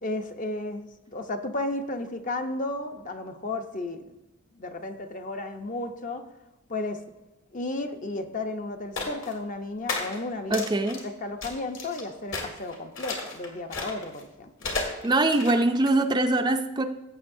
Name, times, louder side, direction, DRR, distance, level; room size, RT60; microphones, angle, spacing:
voice 1, 0.0-4.1 4.5-6.3 6.7-7.0 7.5-10.6 11.0-14.7, left 2 dB, 40° left, 6 dB, 0.7 m, -33 dB
sound 1, 9.0-9.3 9.9-10.2 10.5-11.1 11.4-12.0 12.3-14.2 14.6-15.9, left 3 dB, 65° left, 1.9 m, -33 dB
voice 2, 10.5-11.0 15.0-16.8, right 2 dB, 20° right, 6 dB, 0.4 m, -23 dB
15.5 x 7.3 x 2.6 m, 1.0 s
head